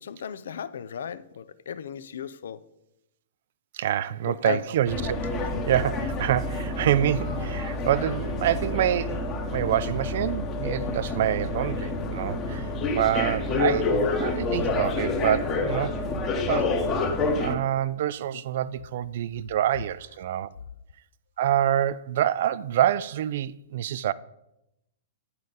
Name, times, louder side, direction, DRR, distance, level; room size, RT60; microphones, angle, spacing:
voice 1, 0.0-2.6 4.2-4.6 18.3-18.4, left 8 dB, 75° left, 0.4 m, -35 dB
voice 2, 3.7-9.2 9.5-12.7 12.9-15.9 16.4-16.8 17.4-20.5 21.4-24.1, right 11 dB, 60° right, 0.3 m, -26 dB
sound 1, 4.9-17.5, left 2 dB, 30° left, 1.0 m, -28 dB
8.9 x 5.5 x 3.9 m
hypercardioid pair, 120°, 0 cm